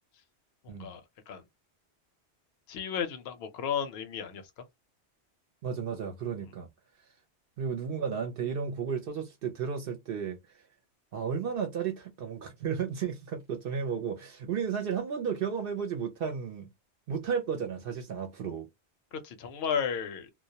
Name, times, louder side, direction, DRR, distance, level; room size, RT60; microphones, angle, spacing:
voice 1, 0.6-1.4 2.7-4.4 19.2-20.3, left 7 dB, 65° left, 0.8 m, -34 dB
voice 2, 5.6-6.7 7.6-10.4 11.1-16.7 17.1-18.7, right 6 dB, 65° right, 0.7 m, -33 dB
2.2 x 2.1 x 2.7 m
omnidirectional pair, 1.2 m